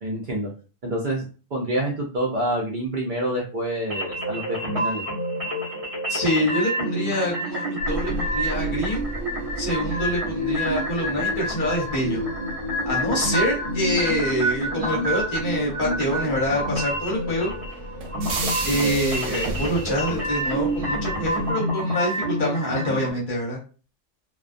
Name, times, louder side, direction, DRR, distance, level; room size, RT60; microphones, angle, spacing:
voice 1, 0.0-0.5 0.8-1.3 1.5-5.0, right 1 dB, 55° right, -2 dB, 0.5 m, -27 dB
sound 1, 3.9-23.1, equal, 35° right, 0.8 m, -28 dB
voice 2, 6.1-9.0 9.6-12.2 12.8-17.5 18.6-23.6, equal, 50° left, -3 dB, 0.8 m, -26 dB
sound 2, 7.8-21.5, right 2 dB, 80° right, 0.9 m, -35 dB
2.3 x 2.2 x 2.5 m, 0.35 s
omnidirectional pair, 1.3 m